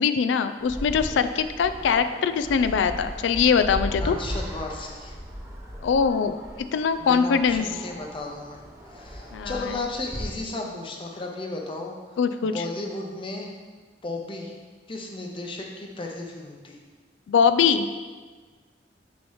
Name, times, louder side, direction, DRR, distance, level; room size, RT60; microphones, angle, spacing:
voice 1, 0.0-4.2 5.8-6.4 6.7-7.7 9.3-9.5 12.2-12.6 17.3-17.9, left 6 dB, 90° left, 10 dB, 0.3 m, -22 dB
sound 1, 0.6-10.3, equal, 15° right, 0.8 m, -37 dB
voice 2, 4.0-5.2 7.0-11.9 12.4-13.5 14.0-14.6 14.9-16.8, left 2 dB, 30° left, 0 dB, 0.7 m, -34 dB
6.2 x 3.0 x 5.5 m, 1.4 s
head